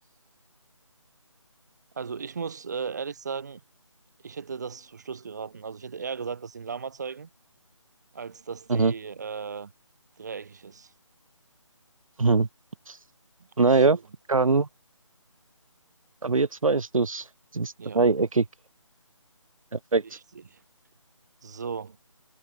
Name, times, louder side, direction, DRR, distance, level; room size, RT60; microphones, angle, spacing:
voice 1, 1.9-3.6 4.2-7.3 8.1-9.7 10.2-10.9 13.7-14.0 17.8-18.0 20.1-20.2 20.5-20.6 21.4-22.0, right 6 dB, 35° right, 1.3 m, -36 dB
voice 2, 13.6-14.0 14.3-14.7 16.2-18.5 19.7-20.2, right 3 dB, 90° right, 0.5 m, -22 dB
figure-of-eight pair, 155°, 17 cm